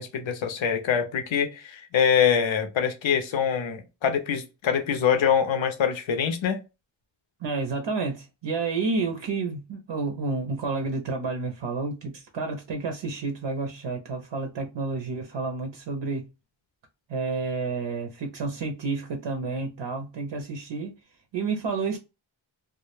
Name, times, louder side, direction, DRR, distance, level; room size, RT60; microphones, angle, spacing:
voice 1, 0.0-6.6, left 7 dB, 70° left, 0.6 m, -24 dB
voice 2, 7.4-16.3 17.1-20.9 21.3-22.0, right 4 dB, 65° right, 0.6 m, -30 dB
2.2 x 2.0 x 3.0 m
cardioid pair, 45°, 48 cm